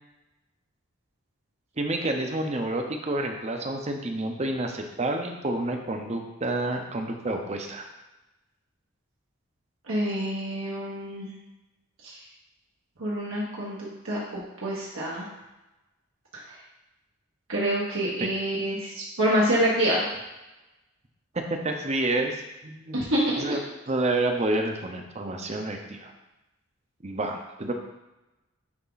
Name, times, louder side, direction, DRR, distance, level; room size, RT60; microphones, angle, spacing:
voice 1, 1.8-7.8 18.2-18.3 21.3-23.0 23.4-23.6 23.9-26.1 27.0-27.7, right 2 dB, 30° right, 4 dB, 0.7 m, -29 dB
voice 2, 9.9-11.3 12.0-12.2 13.0-15.3 17.5-20.1 22.9-23.6, right 1 dB, 80° right, -6 dB, 1.5 m, -27 dB
9.6 x 3.6 x 4.0 m, 0.99 s
head